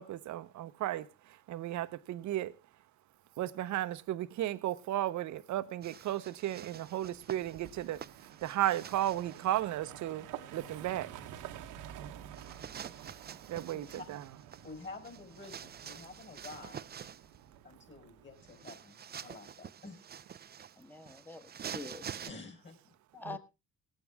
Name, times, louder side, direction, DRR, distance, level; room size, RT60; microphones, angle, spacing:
voice 1, 0.0-2.5 3.4-10.3 10.5-11.1 13.5-14.2 23.2-23.4, right 13 dB, 65° right, 0.9 m, -35 dB
sound 1, 5.8-9.6 12.3-17.4 18.4-22.3, right 8 dB, 30° right, 0.5 m, -47 dB
sound 2, 6.8-18.6, right 10 dB, 85° right, 1.3 m, -50 dB
voice 2, 13.7-14.1 14.6-17.1 17.6-20.0 22.3-22.8, left 3 dB, 35° left, 4.9 m, -49 dB
voice 3, 20.8-22.1 23.1-23.4, left 3 dB, 5° left, 1.3 m, -45 dB
18.5 x 9.0 x 3.5 m
supercardioid pair, 70°, 31 cm